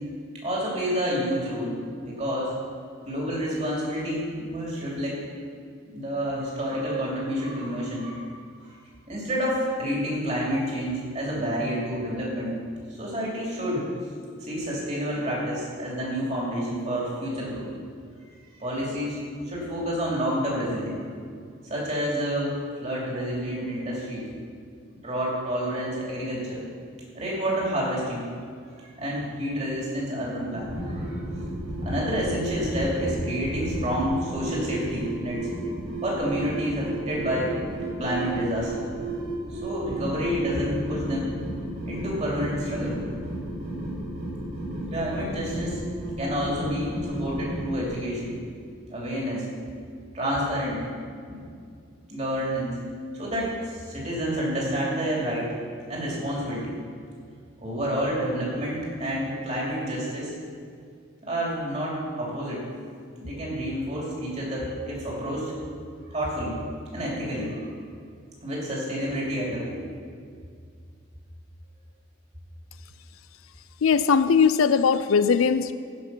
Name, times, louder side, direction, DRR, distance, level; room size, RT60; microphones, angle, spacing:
voice 1, 0.3-2.5 3.0-5.2 5.9-8.3 8.6-8.7 9.1-12.6 12.9-13.9 14.4-17.7 18.6-21.0 21.6-24.3 25.0-26.6 27.1-28.3 29.0-31.2 31.8-35.4 36.0-37.6 38.0-38.9 39.5-41.3 41.9-43.0 44.9-45.8 46.1-48.4 48.9-49.5 50.1-50.8 51.3-51.5 52.1-52.8 53.1-55.6 55.9-56.8 57.6-60.3 61.2-62.7 63.2-65.5 66.1-66.6 66.9-67.6 68.4-69.8, equal, 35° right, -4 dB, 2.7 m, -29 dB
sound 1, 30.5-47.9, right 1 dB, 75° right, 3.2 m, -33 dB
voice 2, 73.8-75.7, left 6 dB, 85° left, 13 dB, 0.4 m, -20 dB
16.0 x 5.7 x 5.5 m, 2.2 s
head